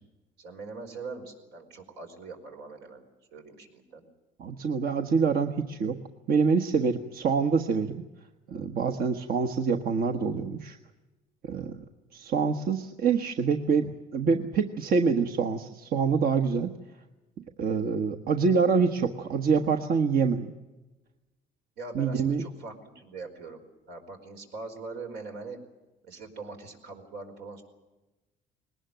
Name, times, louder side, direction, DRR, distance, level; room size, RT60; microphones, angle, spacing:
voice 1, 0.4-3.0 3.3-4.0 21.8-25.6 26.0-27.6, right 3 dB, 85° right, 4 dB, 4.9 m, -42 dB
voice 2, 4.4-6.0 6.3-8.0 8.5-10.8 11.4-11.8 12.1-16.7 17.6-20.5 21.9-22.4, right 5 dB, 60° right, 6 dB, 1.4 m, -26 dB
21.0 x 19.0 x 9.1 m, 1.1 s
cardioid pair, 110°, 17 cm